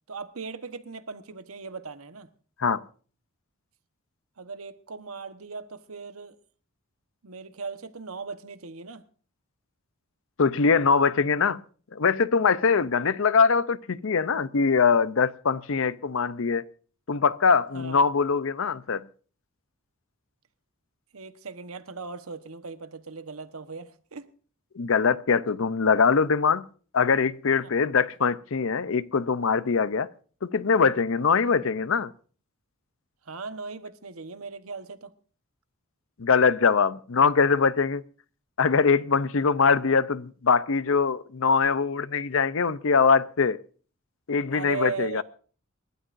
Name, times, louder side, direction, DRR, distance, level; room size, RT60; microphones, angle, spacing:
voice 1, 0.1-2.3 4.4-6.4 7.2-9.0 17.7-18.0 21.1-24.3 27.6-27.7 33.2-35.1 44.5-45.2, right 4 dB, 85° right, 1.2 m, -38 dB
voice 2, 10.4-11.6 11.9-16.6 17.1-19.1 24.7-26.7 26.9-30.1 30.4-32.1 36.2-38.0 38.6-43.6 44.3-45.2, left 5 dB, 65° left, 0.6 m, -22 dB
28.0 x 12.5 x 2.6 m
head